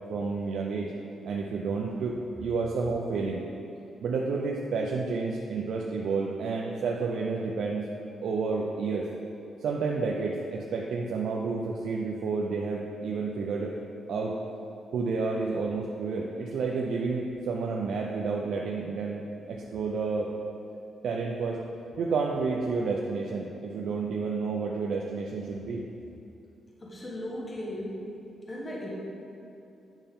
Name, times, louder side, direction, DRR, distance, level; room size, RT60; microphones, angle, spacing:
voice 1, 0.1-0.9 1.2-3.4 4.0-7.9 8.2-9.1 9.6-13.8 14.1-14.4 14.9-19.2 19.5-20.3 21.0-21.6 22.0-25.8, right 4 dB, 75° right, -1 dB, 0.5 m, -30 dB
voice 2, 26.8-28.0 28.5-28.9, left 1 dB, 25° left, -4 dB, 1.3 m, -36 dB
9.0 x 5.6 x 3.6 m, 2.8 s
cardioid pair, 105°, 0 cm